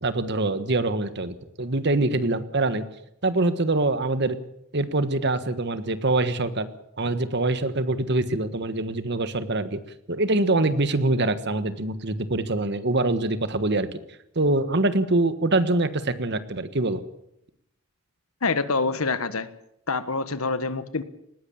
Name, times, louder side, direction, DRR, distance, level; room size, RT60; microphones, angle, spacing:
voice 1, 0.0-2.8 3.2-4.4 4.7-6.7 7.0-9.8 10.1-14.0 14.3-17.0, right 2 dB, 55° right, 12 dB, 1.4 m, -24 dB
voice 2, 18.4-19.5 19.9-21.0, left 3 dB, 85° left, 13 dB, 1.4 m, -26 dB
19.5 x 16.0 x 8.6 m, 0.78 s
head